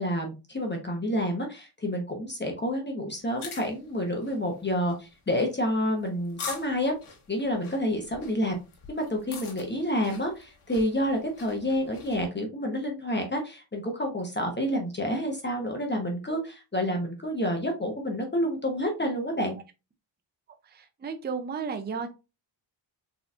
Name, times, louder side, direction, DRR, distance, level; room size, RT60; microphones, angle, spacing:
voice 1, 0.0-6.9 7.3-8.6 8.9-19.6, equal, 20° left, 2 dB, 0.8 m, -29 dB
sound 1, 3.2-12.3, left 5 dB, 75° left, 1.3 m, -44 dB
voice 2, 20.6-22.1, right 5 dB, 20° right, 7 dB, 0.4 m, -34 dB
4.1 x 3.0 x 2.4 m, 0.28 s
wide cardioid pair, 125°, 49 cm